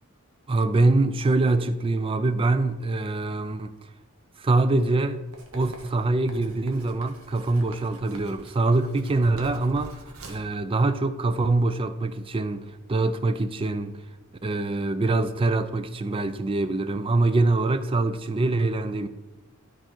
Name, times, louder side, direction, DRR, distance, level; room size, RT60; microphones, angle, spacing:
voice 1, 0.5-3.8 4.4-5.2 5.5-9.9 10.3-14.0 14.4-19.1, right 2 dB, 25° right, 0.4 m, -24 dB
Writing, 5.3-10.5, right 2 dB, 85° right, 1.4 m, -46 dB
12.0 x 4.4 x 4.5 m
head